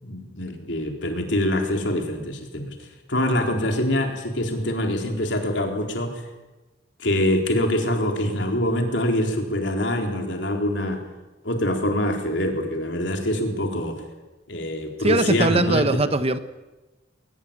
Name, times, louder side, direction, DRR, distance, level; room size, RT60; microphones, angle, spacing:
voice 1, 0.0-6.2 7.0-11.0 11.4-14.0 14.5-15.8, left 1 dB, 70° left, 3 dB, 4.2 m, -24 dB
voice 2, 15.0-16.4, right 2 dB, 35° right, 11 dB, 1.2 m, -21 dB
21.5 x 20.0 x 8.9 m, 1.1 s
head